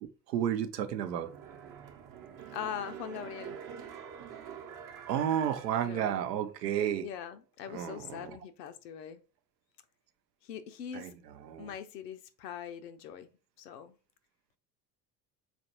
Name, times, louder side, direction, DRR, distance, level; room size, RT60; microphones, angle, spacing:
voice 1, 0.0-1.3 5.1-7.1 7.7-8.4 10.9-11.1 11.5-11.7, right 10 dB, 75° right, 0.6 m, -32 dB
sound 1, 1.0-6.6 6.9-7.0, right 8 dB, 40° right, 0.8 m, -47 dB
voice 2, 2.5-3.6 5.8-6.2 7.0-9.2 10.4-11.1 11.6-14.0, left 9 dB, 75° left, 0.6 m, -42 dB
4.3 x 2.4 x 2.9 m
figure-of-eight pair, 65°, 50 cm